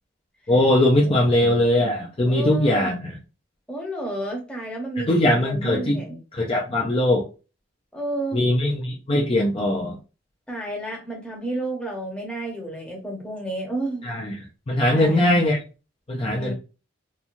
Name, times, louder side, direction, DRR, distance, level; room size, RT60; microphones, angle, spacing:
voice 1, 0.5-3.2 5.0-6.0 6.3-7.3 8.3-10.0 14.0-14.4 14.7-15.6 16.1-16.5, left 1 dB, 30° left, -2 dB, 0.4 m, -20 dB
voice 2, 1.0-1.5 2.2-2.9 3.7-6.2 7.9-8.4 10.5-14.1 14.9-15.2 16.3-16.5, right 2 dB, 5° left, -1 dB, 0.8 m, -31 dB
3.0 x 2.3 x 2.5 m, 0.32 s
head